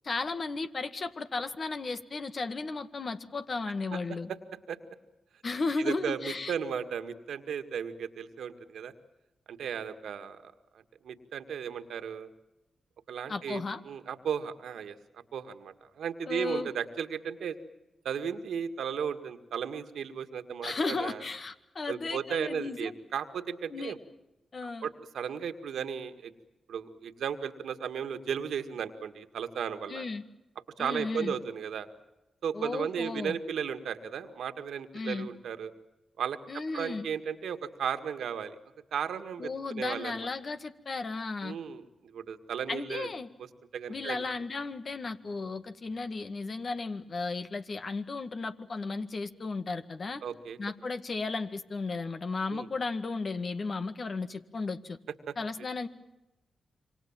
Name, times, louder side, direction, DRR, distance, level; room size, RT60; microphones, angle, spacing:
voice 1, 0.0-4.3 5.4-6.5 13.3-13.8 16.3-16.7 20.6-22.9 23.7-23.9 24.5-24.9 29.9-30.2 30.8-31.3 32.5-33.4 34.9-35.3 36.5-37.1 39.4-41.6 42.7-43.3 43.9-50.2 50.6-55.0 55.4-55.9, left 3 dB, 55° left, 9 dB, 1.9 m, -34 dB
voice 2, 5.8-8.9 9.5-10.5 11.0-12.3 13.1-15.0 15.3-17.6 18.0-21.2 21.9-24.0 24.6-26.3 26.7-30.0 30.8-31.9 32.4-35.7 36.2-38.6 38.9-39.5 39.7-40.3 41.4-43.1 43.4-43.5 43.7-44.2 50.2-50.6 52.5-52.7 55.3-55.4, right 7 dB, 80° right, 8 dB, 1.9 m, -35 dB
27.5 x 24.5 x 7.4 m, 0.99 s
supercardioid pair, 45°, 0 cm